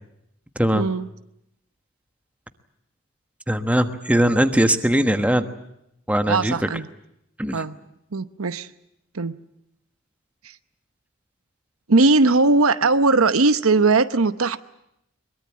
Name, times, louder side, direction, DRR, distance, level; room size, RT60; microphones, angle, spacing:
voice 1, 0.7-1.1 6.3-6.9 7.5-7.8 8.1-8.7 9.1-9.4 11.9-14.6, right 3 dB, 85° right, 11 dB, 0.9 m, -19 dB
voice 2, 3.5-5.4 6.1-6.6 7.4-7.6, right 1 dB, 5° right, 7 dB, 1.2 m, -20 dB
22.5 x 22.0 x 8.6 m, 0.82 s
head